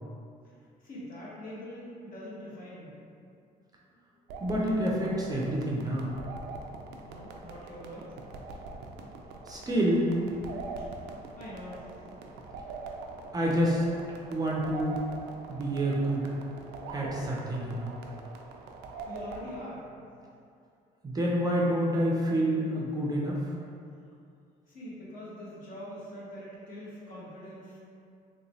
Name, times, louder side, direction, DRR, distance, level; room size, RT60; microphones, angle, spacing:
voice 1, 0.8-3.0 7.0-8.1 10.9-11.1 11.4-11.8 19.1-20.0 24.7-27.8, equal, 55° left, -7 dB, 1.1 m, -43 dB
sound 1, 4.3-19.6, right 3 dB, 85° right, 0.4 m, -43 dB
voice 2, 4.4-6.1 9.5-10.1 13.3-13.8 14.3-15.0 15.5-16.2 16.9-17.9 21.0-23.4, right 1 dB, 20° right, -4 dB, 0.5 m, -28 dB
3.2 x 2.9 x 2.7 m, 2.4 s
cardioid pair, 110°, 17 cm